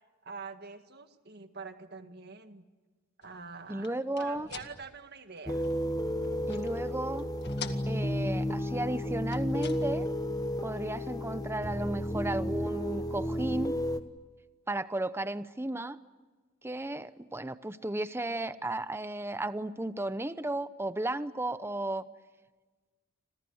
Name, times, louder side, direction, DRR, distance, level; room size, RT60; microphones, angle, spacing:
voice 1, 0.2-2.7 3.2-5.7, right 5 dB, 50° right, 8 dB, 1.8 m, -45 dB
sound 1, 3.2-6.9 7.2-8.4 9.1-10.2, left 7 dB, 50° left, 1.9 m, -47 dB
voice 2, 3.7-4.5 6.5-7.3 7.9-10.1 10.6-13.7 14.7-16.0 16.6-22.1, right 1 dB, 10° right, 13 dB, 0.8 m, -34 dB
sound 2, 5.5-14.0, left 1 dB, 15° left, 1.3 m, -32 dB
29.5 x 26.5 x 6.4 m, 1.3 s
head